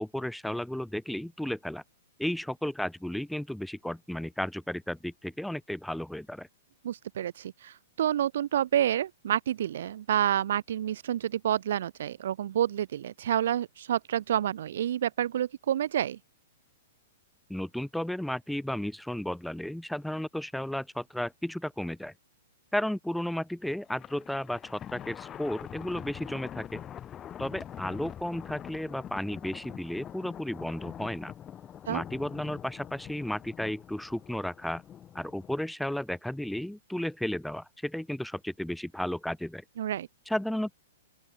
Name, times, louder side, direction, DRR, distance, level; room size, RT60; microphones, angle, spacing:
voice 1, 0.0-1.8 2.2-6.5 17.5-22.1 22.7-26.8 27.4-31.3 31.9-34.8 35.2-39.6 40.3-40.7, left 1 dB, ahead, 3.5 m, -33 dB
voice 2, 6.8-16.2 31.9-32.0 39.8-40.1, right 10 dB, 65° right, 0.5 m, -29 dB
Thunder, 23.8-35.6, left 10 dB, 25° left, 3.6 m, -44 dB
open air
hypercardioid pair, 120°, 0 cm